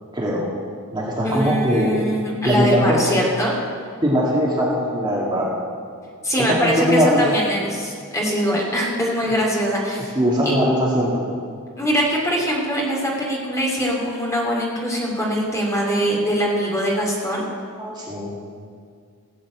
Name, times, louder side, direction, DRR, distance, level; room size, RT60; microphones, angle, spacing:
voice 1, 0.1-0.4 0.9-1.9 2.4-3.0 4.0-5.5 6.4-7.4 10.2-11.3 17.8-18.3, equal, 20° right, -5 dB, 2.2 m, -20 dB
voice 2, 1.2-3.6 6.2-10.1 11.8-17.4, equal, 15° left, -3 dB, 2.8 m, -22 dB
16.5 x 7.2 x 8.5 m, 2.2 s
head